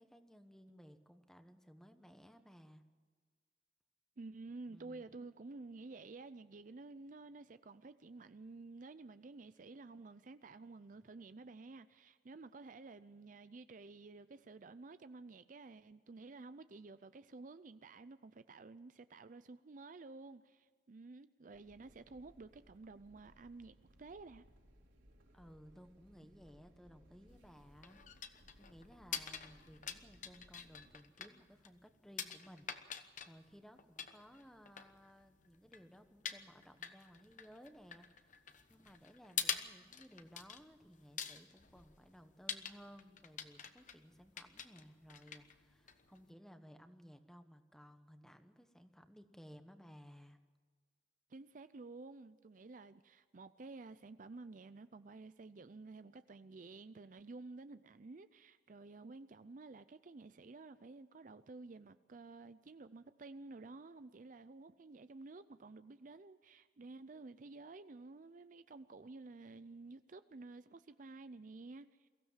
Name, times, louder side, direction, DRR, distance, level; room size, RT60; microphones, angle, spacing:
voice 1, 0.0-2.8 4.7-5.0 25.3-38.4 38.7-50.4, equal, 5° left, 1.1 m, -59 dB
voice 2, 4.2-24.5 51.3-72.1, right 3 dB, 45° right, 0.5 m, -52 dB
sound 1, 21.5-30.9, equal, 85° right, 5.2 m, -65 dB
sound 2, 27.3-46.3, left 8 dB, 40° left, 1.1 m, -47 dB
23.0 x 15.5 x 7.4 m
head